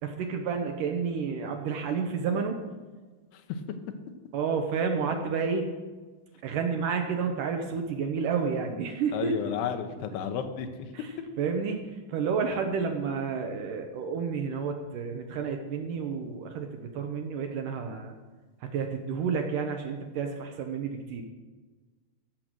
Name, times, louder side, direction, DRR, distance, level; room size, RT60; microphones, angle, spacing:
voice 1, 0.0-2.6 4.3-5.7 6.4-9.4 10.9-11.8 12.1-18.1 18.6-21.2, right 5 dB, 70° right, 4 dB, 2.1 m, -30 dB
voice 2, 9.1-10.7, left 8 dB, 85° left, 6 dB, 3.0 m, -32 dB
15.0 x 6.7 x 6.2 m, 1.3 s
omnidirectional pair, 4.7 m